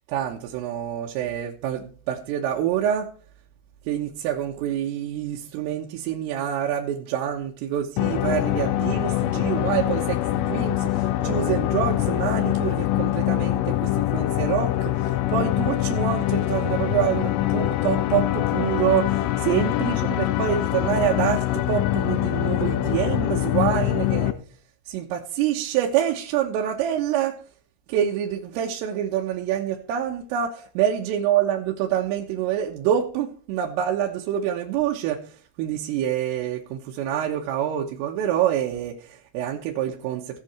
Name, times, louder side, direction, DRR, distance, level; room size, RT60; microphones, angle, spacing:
voice 1, 0.1-3.1 3.9-24.4 24.9-27.4 27.9-40.4, right 10 dB, 90° right, 3.9 m, -26 dB
sound 1, 8.0-24.3, left 14 dB, 85° left, 3.4 m, -24 dB
17.0 x 7.7 x 4.4 m
omnidirectional pair, 5.8 m